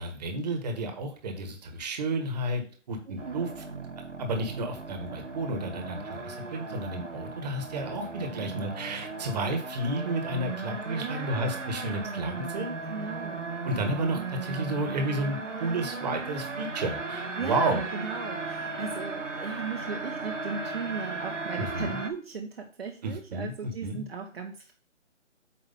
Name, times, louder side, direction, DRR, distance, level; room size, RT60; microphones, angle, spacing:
voice 1, 0.0-3.5 4.2-12.7 13.6-17.8 21.6-22.0 23.0-24.0, right 2 dB, 35° right, 5 dB, 1.4 m, -32 dB
voice 2, 3.1-3.5 11.0-11.6 12.9-13.4 14.1-14.3 17.4-24.7, right 5 dB, 55° right, 2 dB, 1.0 m, -37 dB
sound 1, 3.2-22.1, right 3 dB, 80° right, 1.3 m, -36 dB
8.6 x 3.0 x 5.4 m, 0.42 s
figure-of-eight pair, 145°, 36 cm